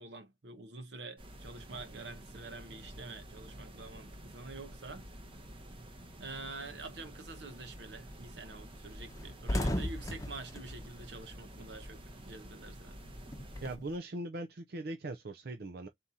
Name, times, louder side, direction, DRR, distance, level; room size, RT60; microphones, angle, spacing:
voice 1, 0.0-5.1 6.2-13.0, right 3 dB, 80° right, 0.9 m, -47 dB
sound 1, 1.2-13.8, equal, 30° right, 0.9 m, -50 dB
sound 2, 7.5-7.7 8.1-8.2 8.5-8.6 9.0-12.0 12.2-13.9, left 1 dB, 20° left, 0.7 m, -37 dB
voice 2, 13.6-15.9, right 1 dB, 60° right, 0.6 m, -40 dB
4.1 x 2.9 x 3.6 m
head